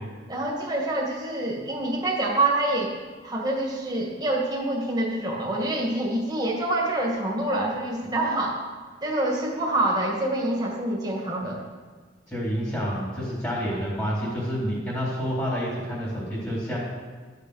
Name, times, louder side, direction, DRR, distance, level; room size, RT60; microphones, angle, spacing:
voice 1, 0.3-3.0 3.2-8.6 9.0-11.6, right 1 dB, 20° right, -2 dB, 2.1 m, -26 dB
voice 2, 12.3-16.8, equal, 15° left, -6 dB, 3.7 m, -28 dB
12.5 x 6.7 x 6.5 m, 1.4 s
head